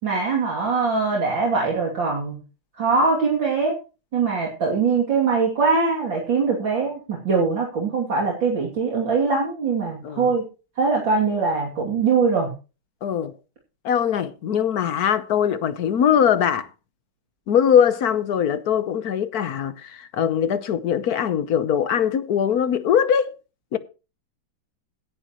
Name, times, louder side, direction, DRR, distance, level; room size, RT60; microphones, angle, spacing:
voice 1, 0.0-2.4 2.8-3.8 4.1-10.5 10.8-12.5, right 4 dB, 60° right, 3.5 m, -22 dB
voice 2, 13.0-13.3 13.8-16.7 17.5-23.3 23.7-23.8, left 8 dB, 55° left, 1.2 m, -21 dB
16.5 x 10.5 x 3.0 m
omnidirectional pair, 2.3 m